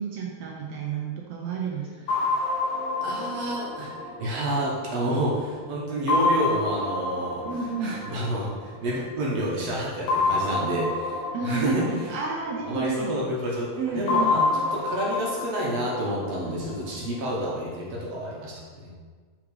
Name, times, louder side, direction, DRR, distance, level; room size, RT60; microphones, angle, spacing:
voice 1, 0.0-1.9 7.4-7.9 11.3-13.2 13.8-14.3, right 5 dB, 80° right, -1 dB, 1.5 m, -30 dB
sound 1, 2.1-5.4 6.1-9.0 10.1-13.2 14.1-17.2, left 3 dB, 75° left, 2.3 m, -28 dB
voice 2, 3.0-3.9 4.2-7.4 7.8-11.9 12.7-18.9, right 1 dB, 65° right, -4 dB, 1.8 m, -29 dB
7.3 x 4.9 x 3.2 m, 1.5 s
omnidirectional pair, 3.6 m